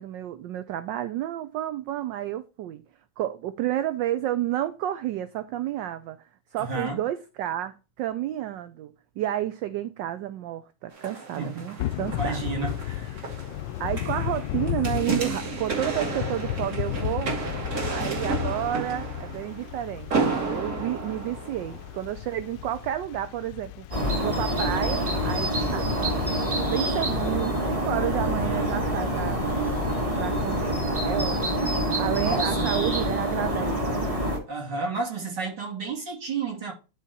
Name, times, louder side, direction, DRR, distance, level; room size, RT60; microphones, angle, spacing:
voice 1, 0.0-2.8 3.2-12.5 13.8-17.3 17.9-20.1 20.4-23.9 24.2-26.1 26.7-29.4 30.2-31.7 31.9-33.7, right 12 dB, 70° right, 1.1 m, -31 dB
voice 2, 6.6-7.0 11.4-13.3 28.1-28.7 32.2-32.9 34.5-36.7, right 4 dB, 50° right, 3.5 m, -32 dB
sound 1, 10.9-22.2 22.7-22.8, right 4 dB, 35° right, 1.8 m, -32 dB
Thunder / Rain, 11.8-30.8, left 14 dB, 80° left, 1.0 m, -35 dB
sound 2, 23.9-34.4, equal, 15° right, 1.7 m, -26 dB
11.0 x 3.9 x 4.1 m
omnidirectional pair, 2.4 m